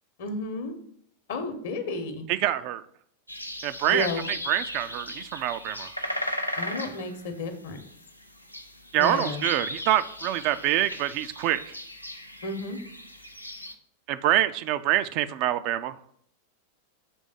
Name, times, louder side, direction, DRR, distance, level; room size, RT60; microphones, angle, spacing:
voice 1, 0.2-0.7 1.3-2.3 3.9-4.2 6.6-7.8 9.0-9.5 12.4-12.8, left 2 dB, 55° left, 7 dB, 0.9 m, -32 dB
voice 2, 2.3-2.8 3.6-5.9 8.9-11.8 14.1-16.0, right 13 dB, 45° right, 12 dB, 0.3 m, -26 dB
sound 1, 3.3-13.7, left 1 dB, 90° left, 0.5 m, -37 dB
6.2 x 3.3 x 5.3 m, 0.65 s
figure-of-eight pair, 90°, 0 cm